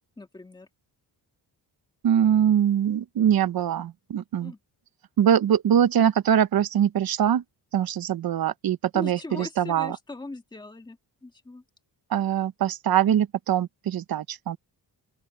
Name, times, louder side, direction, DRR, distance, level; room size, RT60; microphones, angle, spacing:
voice 1, 0.2-0.7 4.4-4.6 8.9-11.6, left 2 dB, 10° left, 1.8 m, -40 dB
voice 2, 2.0-4.5 5.2-7.4 7.7-10.0 12.1-14.6, right 9 dB, 60° right, 0.9 m, -23 dB
open air
wide cardioid pair, 160°, 40 cm